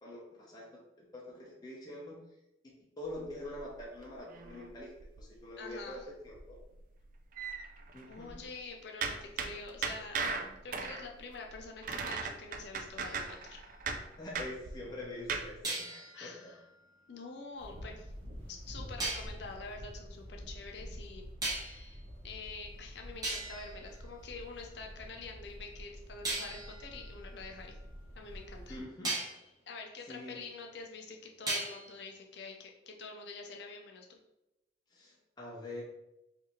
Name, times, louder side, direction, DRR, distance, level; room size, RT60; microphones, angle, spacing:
voice 1, 0.0-2.2 3.0-4.9 5.2-6.6 7.9-8.5 14.2-16.5 28.7-29.1 30.1-30.4 34.9-35.8, left 1 dB, 20° left, -5 dB, 0.7 m, -45 dB
sound 1, 3.1-5.4 5.7-6.0 6.3-8.5 9.0-15.6, right 5 dB, 50° right, 0.3 m, -38 dB
voice 2, 5.6-6.1 8.1-10.3 10.6-13.6 16.1-16.6 17.1-21.3 21.5-27.8 28.1-28.8 29.7-34.2, left 3 dB, 70° left, 2 dB, 0.5 m, -46 dB
sound 2, 13.0-14.5 15.6-17.8 19.0-19.4 21.4-22.0 22.7-22.8 23.2-24.9 26.2-28.4 29.0-29.5 31.5-32.0, right 2 dB, 20° right, 1.1 m, -40 dB
sound 3, 17.5-28.8, equal, 70° right, 1.4 m, -48 dB
4.7 x 2.7 x 3.0 m, 0.90 s
head